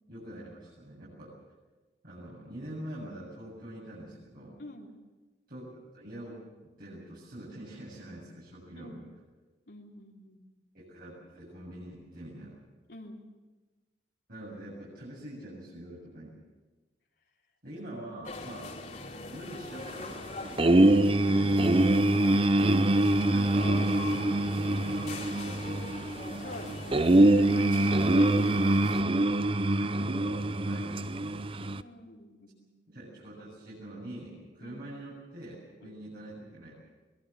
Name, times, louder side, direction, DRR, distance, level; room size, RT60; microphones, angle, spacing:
voice 1, 0.1-1.4 2.0-4.6 5.5-6.4 6.8-9.0 10.7-12.6 14.3-16.4 17.6-18.7 19.3-22.0 23.3-26.0 29.6-31.5 32.9-36.8, right 1 dB, 55° right, -7 dB, 7.7 m, -44 dB
voice 2, 4.6-5.0 8.8-9.0 9.7-10.4 12.9-13.3 18.9-19.3 26.4-28.4 31.6-32.7 34.6-34.8 35.8-36.0, left 1 dB, 70° left, -1 dB, 3.4 m, -47 dB
sound 1, 18.2-29.0, left 2 dB, 40° left, 3.2 m, -42 dB
sound 2, 20.6-31.8, right 1 dB, 30° right, 0.6 m, -24 dB
23.0 x 21.5 x 7.3 m, 1.2 s
head